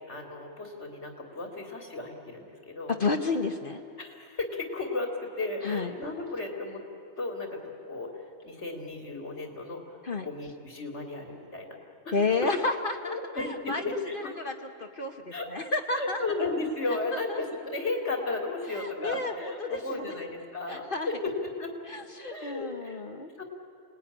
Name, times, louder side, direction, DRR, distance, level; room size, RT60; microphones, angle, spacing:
voice 1, 0.0-3.0 4.0-6.8 7.2-8.1 8.4-9.8 10.2-11.8 12.0-12.1 12.4-12.5 13.0-14.3 15.3-15.5 16.0-21.7 22.3-23.0 23.4-23.5, left 3 dB, 75° left, 3 dB, 3.2 m, -34 dB
voice 2, 2.9-3.8 5.6-5.9 10.0-10.3 12.1-13.8 14.1-14.5 14.8-16.2 17.3-17.4 18.7-20.1 20.7-21.1 21.9-23.3, left 3 dB, 50° left, 3 dB, 1.2 m, -31 dB
28.5 x 19.5 x 9.9 m, 2.6 s
omnidirectional pair, 1.2 m